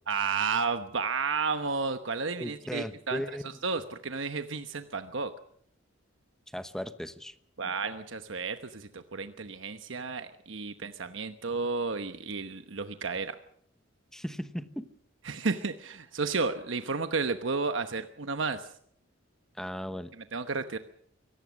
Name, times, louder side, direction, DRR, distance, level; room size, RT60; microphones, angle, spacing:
voice 1, 0.1-3.2 3.6-5.3 7.6-13.4 15.2-18.7 20.3-20.8, right 4 dB, 75° right, 9 dB, 1.1 m, -32 dB
voice 2, 2.4-3.6 6.5-7.3 14.1-14.9 19.6-20.1, equal, 5° left, 11 dB, 1.0 m, -37 dB
23.5 x 18.0 x 6.3 m, 0.65 s
head